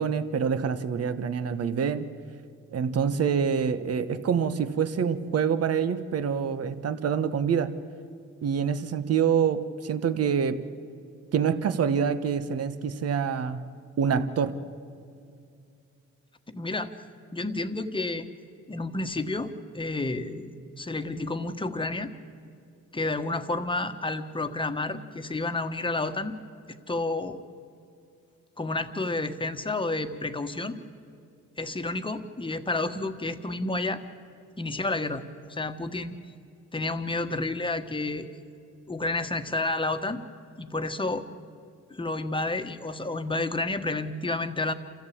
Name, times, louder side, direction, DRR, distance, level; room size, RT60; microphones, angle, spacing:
voice 1, 0.0-2.1 2.7-7.7 8.4-10.6 11.3-13.6 14.0-14.6, right 7 dB, 55° right, 12 dB, 1.2 m, -26 dB
voice 2, 16.5-16.9 17.3-18.3 18.7-22.1 22.9-26.3 26.7-27.4 28.6-30.8 31.6-34.0 34.6-36.2 36.7-38.3 38.9-40.2 40.6-41.2 41.9-44.7, left 2 dB, 15° left, 8 dB, 1.4 m, -30 dB
27.5 x 14.5 x 8.6 m, 2.4 s
cardioid pair, 90°, 30 cm